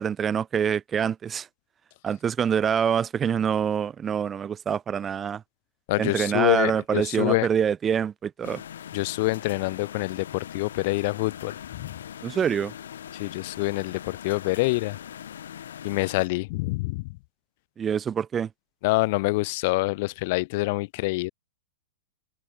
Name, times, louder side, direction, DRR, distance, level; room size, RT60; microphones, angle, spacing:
voice 1, 0.0-1.5 2.0-5.4 6.0-8.6 12.2-12.7 17.8-18.5, right 8 dB, 20° right, 2.8 m, -25 dB
voice 2, 5.9-7.5 8.9-12.0 13.1-15.0 15.8-17.1 18.8-21.3, left 23 dB, 50° left, 5.5 m, -26 dB
sound 1, 8.4-16.3, left 9 dB, 85° left, 4.8 m, -41 dB
hypercardioid pair, 140°, 0 cm